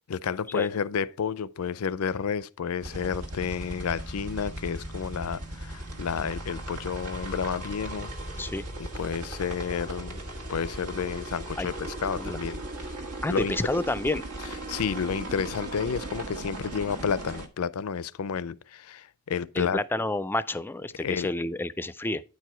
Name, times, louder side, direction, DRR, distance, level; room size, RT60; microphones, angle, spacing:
voice 1, 0.1-8.1 8.8-10.2 10.5-12.9 13.3-13.5 14.7-19.8 21.0-21.3, left 6 dB, 75° left, 0.5 m, -31 dB
sound 1, 2.8-17.5, right 1 dB, 90° right, 1.6 m, -37 dB
voice 2, 13.2-14.2 19.6-22.2, left 2 dB, 10° left, 0.3 m, -29 dB
9.5 x 4.8 x 4.4 m
head